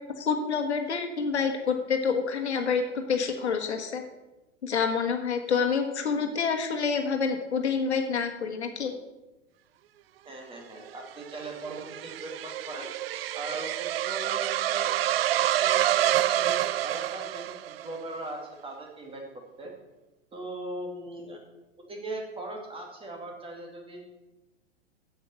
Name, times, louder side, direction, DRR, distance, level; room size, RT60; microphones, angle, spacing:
voice 1, 0.2-4.0 4.6-8.9, left 5 dB, 65° left, 4 dB, 1.5 m, -27 dB
voice 2, 10.2-12.9 13.3-14.9 15.4-19.2 19.6-19.7 20.3-21.4 21.7-24.0, right 2 dB, 15° right, 1 dB, 2.3 m, -39 dB
sound 1, 10.9-18.0, right 13 dB, 55° right, 0.5 m, -28 dB
8.6 x 7.9 x 6.7 m, 1.0 s
figure-of-eight pair, 100°, 36 cm